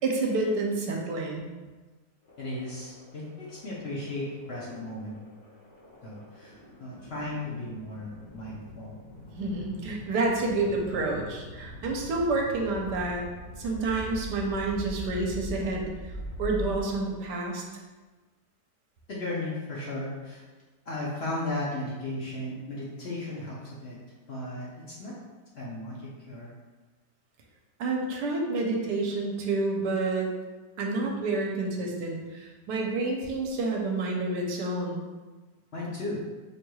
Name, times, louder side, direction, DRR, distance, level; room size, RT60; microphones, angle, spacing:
voice 1, 0.0-1.5 9.4-13.2 13.6-16.1 16.4-17.6 27.8-30.3 30.8-35.0, right 3 dB, 80° right, 0 dB, 1.2 m, -29 dB
sound 1, 2.3-17.4, equal, 90° left, 1.9 m, -42 dB
voice 2, 2.4-5.2 6.0-9.0 19.1-20.4 20.9-24.0 24.3-25.1 25.5-26.5 35.7-36.2, left 2 dB, 60° left, -5 dB, 0.6 m, -35 dB
5.1 x 3.1 x 2.3 m, 1.3 s
omnidirectional pair, 1.8 m